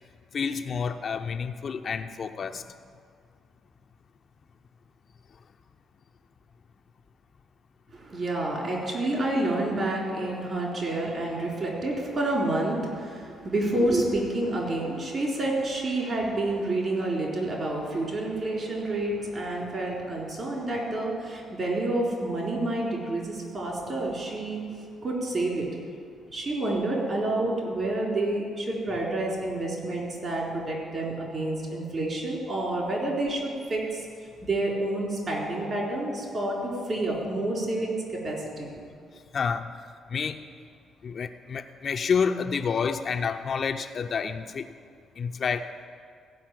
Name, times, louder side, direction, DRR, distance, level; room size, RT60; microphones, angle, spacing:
voice 1, 0.3-2.6 39.3-39.7 40.1-40.4 41.0-44.7 45.2-45.7, left 6 dB, 50° left, 7 dB, 0.5 m, -29 dB
voice 2, 7.9-24.6 25.0-25.7 26.3-34.1 34.4-38.8, right 2 dB, 45° right, -2 dB, 3.7 m, -29 dB
16.0 x 5.4 x 7.5 m, 2.1 s
cardioid pair, 90°, 0 cm